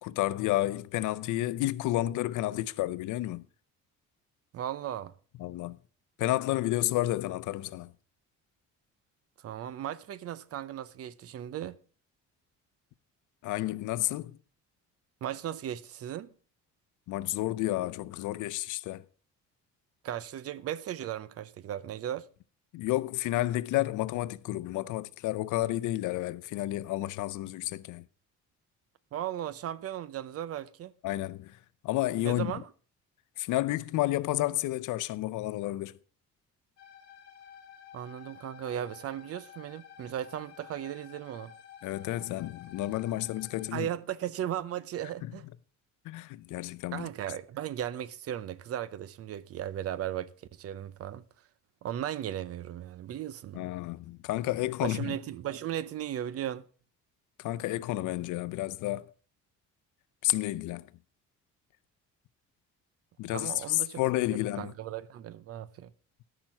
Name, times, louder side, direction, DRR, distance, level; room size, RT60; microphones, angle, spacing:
voice 1, 0.0-3.4 5.4-5.8 6.2-7.9 13.4-14.4 17.1-19.0 22.7-28.0 31.0-31.6 31.8-32.5 33.4-35.9 41.8-43.9 45.2-45.3 46.0-47.1 53.5-55.2 57.4-59.1 60.2-60.9 63.2-64.7, left 16 dB, 85° left, 0.6 m, -31 dB
voice 2, 4.5-5.1 9.4-11.8 15.2-16.3 20.0-22.3 29.1-30.9 32.2-32.7 37.9-41.5 43.7-45.4 46.9-51.2 51.8-53.6 54.8-56.6 63.3-64.0 64.6-65.9, right 11 dB, 50° right, 0.6 m, -36 dB
sound 1, 36.8-43.7, left 9 dB, 55° left, 1.9 m, -52 dB
13.5 x 6.0 x 5.9 m
cardioid pair, 145°, 30 cm